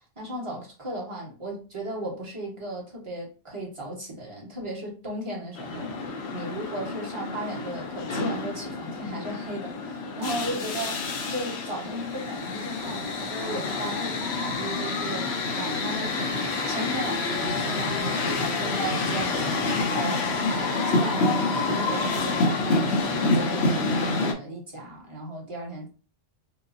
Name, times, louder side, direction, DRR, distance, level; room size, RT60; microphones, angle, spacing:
voice 1, 0.2-5.9 6.3-15.3 15.5-16.3 16.7-25.9, right 1 dB, 25° right, 1.2 m, -36 dB
sound 1, 5.6-24.3, left 3 dB, 65° left, 0.9 m, -28 dB
4.8 x 2.0 x 2.6 m
omnidirectional pair, 1.3 m